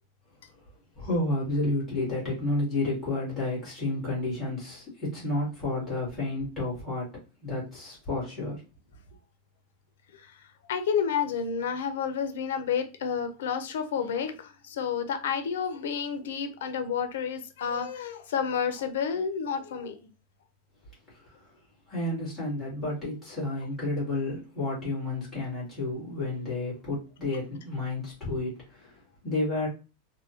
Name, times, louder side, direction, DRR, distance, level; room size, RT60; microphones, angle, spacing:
voice 1, 0.9-7.1 7.4-8.6 21.2-21.3 21.9-29.7, left 2 dB, 5° left, 1.7 m, -31 dB
voice 2, 10.1-10.4 10.7-20.1, left 7 dB, 80° left, 0.6 m, -30 dB
3.4 x 2.2 x 2.8 m
supercardioid pair, 180°, 0 cm